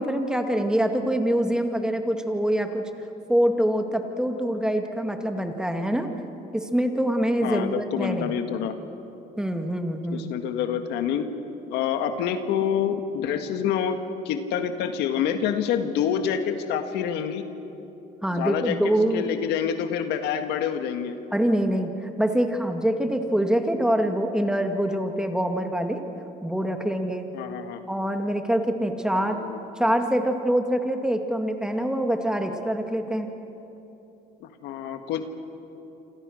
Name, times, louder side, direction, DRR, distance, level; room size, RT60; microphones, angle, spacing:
voice 1, 0.0-2.9 3.3-6.1 6.5-8.4 9.4-10.3 18.2-19.3 21.3-21.9 22.2-26.0 26.4-27.3 27.9-29.5 29.8-33.3, right 1 dB, 5° right, 5 dB, 2.2 m, -25 dB
voice 2, 7.4-8.8 10.1-11.3 11.7-14.0 14.3-17.4 18.3-21.2 27.3-27.8 29.1-29.6 34.4-35.2, left 8 dB, 90° left, 7 dB, 1.8 m, -27 dB
27.5 x 26.5 x 6.5 m, 3.0 s
cardioid pair, 110°, 17 cm